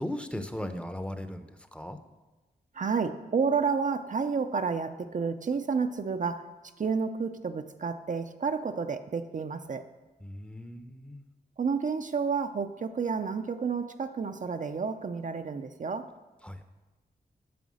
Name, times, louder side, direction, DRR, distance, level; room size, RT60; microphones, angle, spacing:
voice 1, 0.0-2.0 10.2-11.3 16.4-16.6, left 1 dB, 5° left, 8 dB, 0.7 m, -37 dB
voice 2, 2.8-6.4 6.8-9.8 11.6-16.1, right 5 dB, 50° right, 8 dB, 0.6 m, -30 dB
9.3 x 6.8 x 6.3 m, 1.1 s
wide cardioid pair, 90°, 17 cm